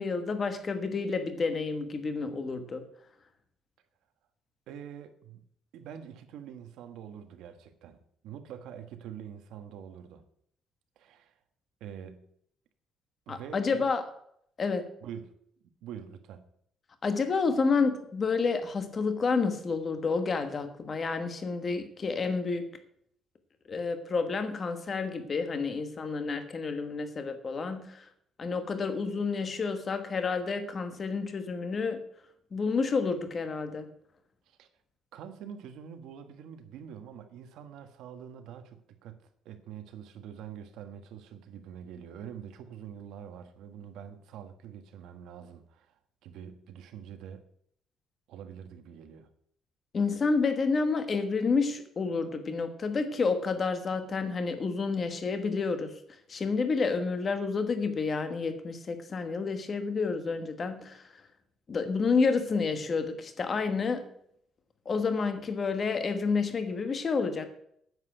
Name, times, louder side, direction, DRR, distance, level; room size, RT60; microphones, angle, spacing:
voice 1, 0.0-2.8 13.3-14.0 14.6-14.9 17.0-22.7 23.7-28.0 28.4-32.0 32.5-33.9 49.9-55.9 56.3-61.0 61.7-64.1 64.8-67.5, left 4 dB, 30° left, 1.3 m, -29 dB
voice 2, 4.7-5.4 5.7-8.0 8.2-10.2 11.0-11.3 11.8-12.3 13.3-13.9 15.0-15.3 15.6-16.5 34.5-34.7 35.1-45.9 46.2-47.5 48.3-49.3, right 8 dB, 85° right, 1.4 m, -45 dB
9.6 x 7.6 x 7.8 m
cardioid pair, 180°, 0 cm